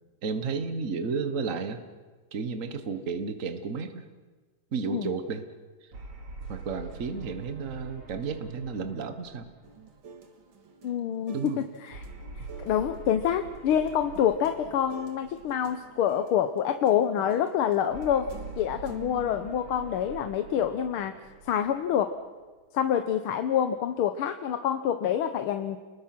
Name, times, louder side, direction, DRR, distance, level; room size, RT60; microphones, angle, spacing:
voice 1, 0.2-1.8 2.3-4.1 4.7-5.5 6.5-9.5 11.3-11.6, right 5 dB, 40° right, 9 dB, 1.7 m, -32 dB
sound 1, 5.9-10.5 11.9-16.3 17.9-22.5, right 4 dB, 80° right, 3.9 m, -45 dB
sound 2, 9.6-19.6, right 5 dB, 65° right, 2.6 m, -49 dB
voice 2, 10.8-12.0 12.4-18.3 18.6-21.1 21.4-22.1 22.7-25.8, left 9 dB, 80° left, 8 dB, 1.8 m, -27 dB
30.0 x 21.0 x 6.1 m, 1.4 s
omnidirectional pair, 2.4 m